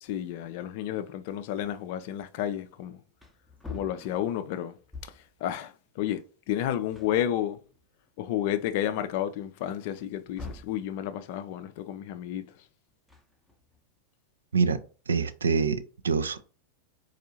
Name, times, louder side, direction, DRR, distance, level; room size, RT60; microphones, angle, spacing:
voice 1, 0.0-3.0 3.7-4.8 5.4-6.2 6.5-7.6 8.2-12.4, left 11 dB, 50° left, 0.4 m, -31 dB
Wood, 2.7-2.8 3.1-5.4 6.5-6.6 6.9-8.1 8.6-8.7 9.9-10.9 12.9-13.8, left 3 dB, ahead, 0.6 m, -45 dB
voice 2, 15.1-16.4, right 5 dB, 70° right, 0.4 m, -25 dB
4.3 x 2.4 x 2.7 m
figure-of-eight pair, 90°, 0 cm